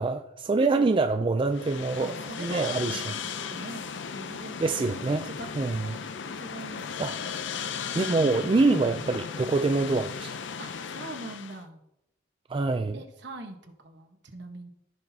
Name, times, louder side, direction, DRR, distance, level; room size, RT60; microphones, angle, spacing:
voice 1, 0.0-3.0 4.6-5.3 5.6-6.0 7.0-7.1 7.9-10.3 12.5-13.0, right 3 dB, 25° right, 0.3 m, -25 dB
voice 2, 0.6-1.1 2.0-5.5 5.8-7.2 10.6-11.8 12.9-14.7, right 2 dB, 65° right, 1.2 m, -43 dB
sound 1, 1.5-11.6, left 6 dB, 70° left, 0.5 m, -36 dB
15.0 x 6.0 x 2.8 m
head